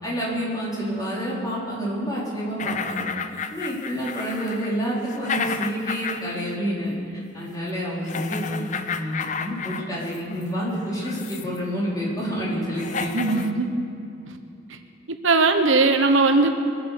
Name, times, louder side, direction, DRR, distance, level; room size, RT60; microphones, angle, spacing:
voice 1, 0.0-3.1 3.5-8.7 8.9-13.4, equal, 20° left, -7 dB, 4.3 m, -28 dB
sound 1, 2.6-6.5 6.8-7.0 8.1-10.5 11.0-11.6 12.4-12.5 12.7-13.5, left 5 dB, 40° left, 0.6 m, -32 dB
voice 2, 13.0-13.8 14.2-14.4 14.7-14.8 15.2-16.6, right 3 dB, 85° right, 6 dB, 1.1 m, -20 dB
23.0 x 8.3 x 6.8 m, 2.6 s
head